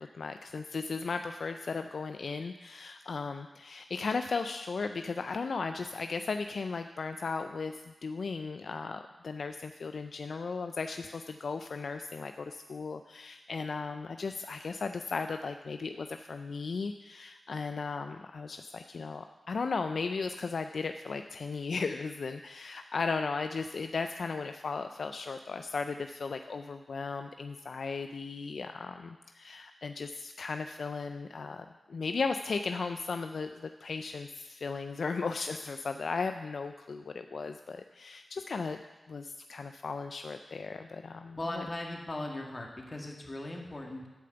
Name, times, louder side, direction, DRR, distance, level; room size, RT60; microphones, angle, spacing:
voice 1, 0.0-38.8 39.1-41.7, left 4 dB, 75° left, 7 dB, 0.3 m, -36 dB
voice 2, 41.4-44.1, left 1 dB, 40° left, 0 dB, 1.9 m, -38 dB
10.5 x 5.1 x 6.8 m, 1.1 s
cardioid pair, 45°, 0 cm